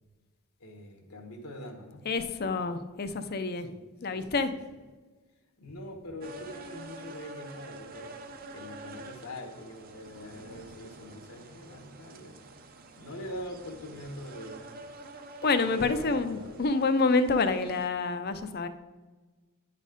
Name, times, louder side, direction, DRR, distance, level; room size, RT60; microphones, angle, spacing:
voice 1, 0.6-2.1 3.6-3.8 4.1-4.3 5.6-8.1 8.5-12.4 12.9-14.6 15.6-16.6, left 1 dB, 80° left, 1 dB, 1.3 m, -43 dB
voice 2, 2.1-3.7 4.0-4.5 15.4-18.7, left 3 dB, 45° left, 10 dB, 0.5 m, -27 dB
sound 1, 6.2-17.9, right 2 dB, 40° right, 0.7 m, -47 dB
10.0 x 4.2 x 5.2 m, 1.3 s
head